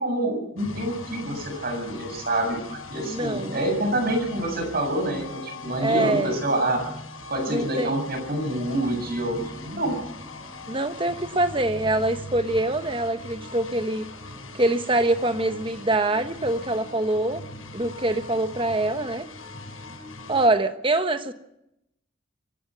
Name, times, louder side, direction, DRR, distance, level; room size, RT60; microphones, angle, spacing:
voice 1, 0.0-6.8 7.3-10.0, right 1 dB, 50° right, 4 dB, 7.5 m, -27 dB
Insane electronic feedback, 0.6-20.5, left 2 dB, 85° left, 7.3 m, -40 dB
voice 2, 3.0-3.6 5.8-6.3 7.5-7.9 10.7-14.0 14.5-17.4 17.7-19.3 20.3-21.3, right 2 dB, 25° right, 9 dB, 1.3 m, -24 dB
25.5 x 16.5 x 6.4 m, 0.81 s
head